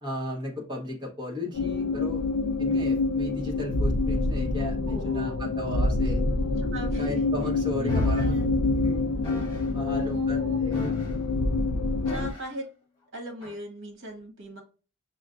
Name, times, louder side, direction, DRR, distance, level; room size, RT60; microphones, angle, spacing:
voice 1, 0.0-2.2 2.6-6.2 7.0-8.4 8.8-9.0 9.7-10.8, left 1 dB, 20° right, -2 dB, 1.0 m, -35 dB
sound 1, 1.5-12.3, left 3 dB, 75° left, 0.4 m, -26 dB
voice 2, 4.9-5.5 6.7-7.3 7.7-8.7 9.9-10.6 12.1-12.6 13.1-14.6, right 1 dB, 55° right, 2 dB, 1.2 m, -38 dB
sound 2, 7.9-8.3 9.2-9.7 10.7-11.3 12.0-12.6 13.4-13.6, equal, 20° left, 1.2 m, -38 dB
6.2 x 2.1 x 2.5 m, 0.36 s
head